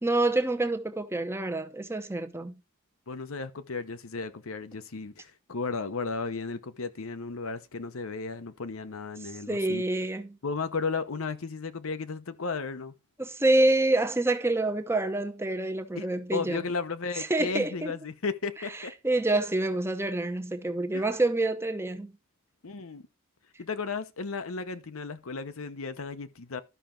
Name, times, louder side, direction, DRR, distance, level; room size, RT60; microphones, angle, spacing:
voice 1, 0.0-2.6 9.2-10.4 13.2-16.6 17.2-17.9 18.8-22.1, right 2 dB, 10° right, 0.8 m, -27 dB
voice 2, 3.1-9.8 10.4-12.9 16.0-18.9 20.9-21.0 22.6-23.0 23.6-26.6, left 4 dB, 75° left, 0.8 m, -34 dB
12.5 x 5.8 x 3.8 m
head